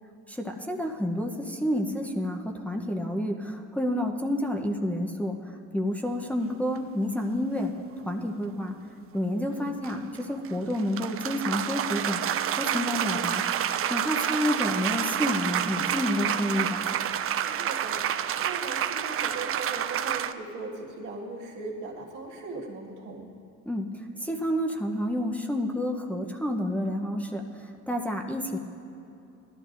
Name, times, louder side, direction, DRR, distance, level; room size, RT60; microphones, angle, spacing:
voice 1, 0.3-7.7 8.0-8.8 9.1-12.2 12.6-13.4 13.9-16.9 23.7-28.6, left 1 dB, 5° left, 0 dB, 0.8 m, -29 dB
sound 1, 6.8-6.9 9.8-20.3, right 9 dB, 50° right, 0.4 m, -29 dB
voice 2, 9.3-9.8 17.5-23.3, right 3 dB, 80° right, -3 dB, 1.8 m, -39 dB
17.0 x 12.5 x 2.6 m, 2.8 s
cardioid pair, 90°, 30 cm